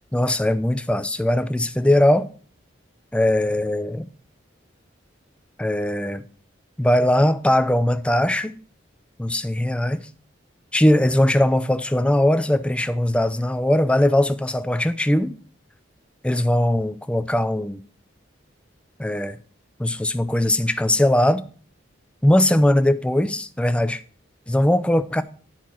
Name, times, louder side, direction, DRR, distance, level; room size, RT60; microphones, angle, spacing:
voice 1, 0.1-2.3 3.1-4.1 5.6-6.2 6.8-8.6 9.2-10.1 10.7-15.4 16.2-17.8 19.0-19.4 19.8-21.4 22.2-24.0 24.5-25.2, left 1 dB, 5° left, 0.4 m, -20 dB
10.5 x 4.4 x 6.2 m
head